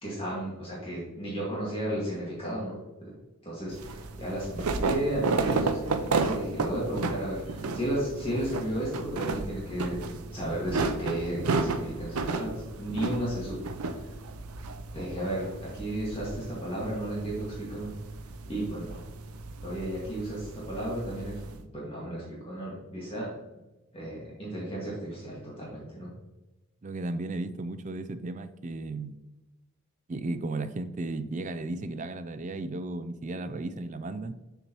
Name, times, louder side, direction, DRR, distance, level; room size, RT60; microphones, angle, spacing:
voice 1, 0.0-3.1 3.4-10.0 10.3-13.6 13.8-14.2 14.9-17.9 18.4-19.0 19.6-21.4 21.7-23.3 23.9-26.1, right 1 dB, 25° left, -7 dB, 2.0 m, -34 dB
sound 1, 3.7-21.6, right 3 dB, 85° right, 0.6 m, -33 dB
voice 2, 26.8-29.2 30.1-34.3, right 2 dB, 35° right, 11 dB, 0.4 m, -34 dB
6.9 x 6.9 x 3.0 m, 1.0 s
head